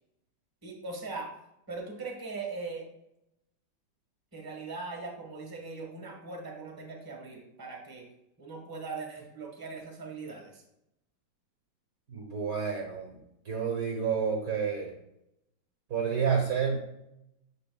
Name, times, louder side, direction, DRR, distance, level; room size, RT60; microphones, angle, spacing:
voice 1, 0.6-1.3 1.7-2.8 4.3-8.1 8.4-10.6, right 3 dB, 15° right, 1 dB, 1.1 m, -40 dB
voice 2, 12.1-13.2 13.4-14.9 15.9-16.8, right 6 dB, 55° right, 1 dB, 1.2 m, -29 dB
9.0 x 6.6 x 2.3 m, 0.82 s
omnidirectional pair, 2.2 m